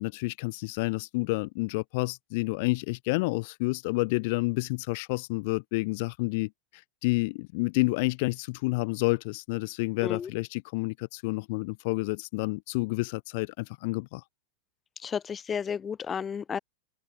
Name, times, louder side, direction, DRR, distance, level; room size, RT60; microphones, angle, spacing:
voice 1, 0.0-14.2, left 26 dB, 50° left, 1.5 m, -29 dB
voice 2, 15.0-16.6, left 7 dB, 20° left, 1.4 m, -32 dB
open air
figure-of-eight pair, 90°, 0 cm